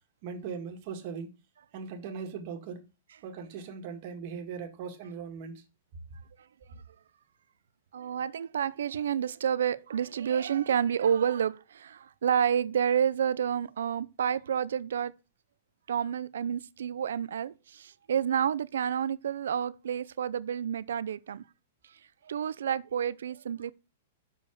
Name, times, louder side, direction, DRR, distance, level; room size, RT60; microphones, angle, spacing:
voice 1, 0.2-1.3 1.7-2.8 3.2-5.6, right 6 dB, 45° right, 1.9 m, -39 dB
voice 2, 7.9-15.1 15.9-21.4 21.8-23.7, right 8 dB, 85° right, 0.5 m, -29 dB
6.9 x 4.8 x 6.4 m
hypercardioid pair, 145°, 0 cm